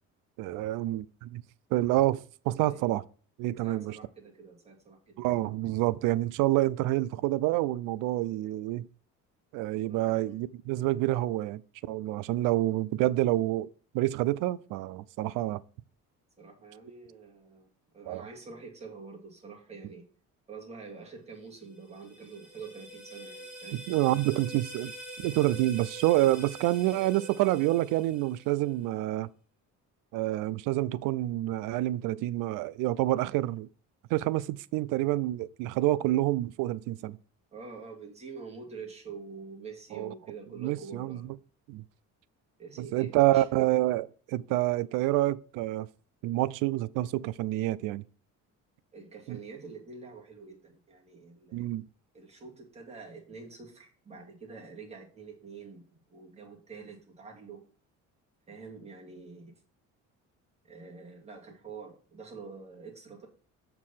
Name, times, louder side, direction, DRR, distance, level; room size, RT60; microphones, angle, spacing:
voice 1, 0.4-1.4 1.7-3.0 3.4-4.0 5.2-8.9 9.5-11.6 11.9-13.7 13.9-15.6 18.1-18.3 23.9-24.9 25.2-29.3 30.1-33.7 34.1-37.2 39.9-40.1 40.6-41.2 41.7-41.8 42.8-45.9 46.2-48.0 49.3-49.4 51.5-51.8, right 16 dB, 85° right, 0.5 m, -28 dB
voice 2, 3.6-5.3 9.9-10.4 16.4-20.1 20.5-23.8 37.5-41.2 42.6-43.5 48.9-51.7 52.1-57.6 58.5-59.5 60.6-63.3, right 4 dB, 20° right, 2.3 m, -46 dB
sound 1, 21.7-28.7, right 1 dB, 5° right, 2.5 m, -45 dB
7.4 x 4.8 x 5.7 m
cardioid pair, 155°, 31 cm